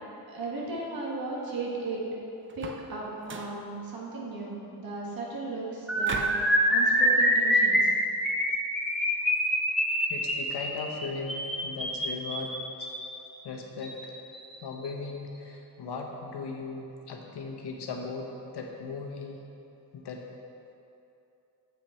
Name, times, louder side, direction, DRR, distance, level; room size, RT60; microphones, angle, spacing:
voice 1, 0.3-2.0 2.5-6.3 6.7-7.9, right 3 dB, 60° right, -3 dB, 1.5 m, -36 dB
sound 1, 2.5-2.9 3.2-3.6 6.0-6.5, right 4 dB, 30° right, 0.4 m, -37 dB
sound 2, 5.9-13.1 13.8-14.1 14.3-14.6 14.8-15.1, equal, ahead, 0.9 m, -25 dB
voice 2, 10.0-12.9 13.4-14.1 14.6-19.4 19.9-20.2, left 4 dB, 80° left, 1 dB, 1.0 m, -38 dB
7.7 x 6.1 x 4.3 m, 2.8 s
wide cardioid pair, 160°, 40 cm